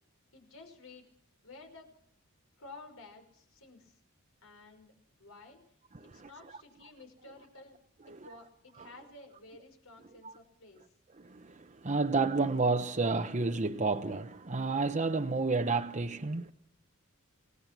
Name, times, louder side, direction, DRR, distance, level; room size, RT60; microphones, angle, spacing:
voice 1, 0.3-1.1 1.4-2.0 2.6-4.0 4.4-4.9 5.2-5.6 6.0-10.8, left 2 dB, 75° left, 5.6 m, -53 dB
voice 2, 5.9-6.3 10.2-10.3 11.2-16.5, right 3 dB, 35° right, 0.9 m, -30 dB
28.0 x 19.5 x 6.1 m
head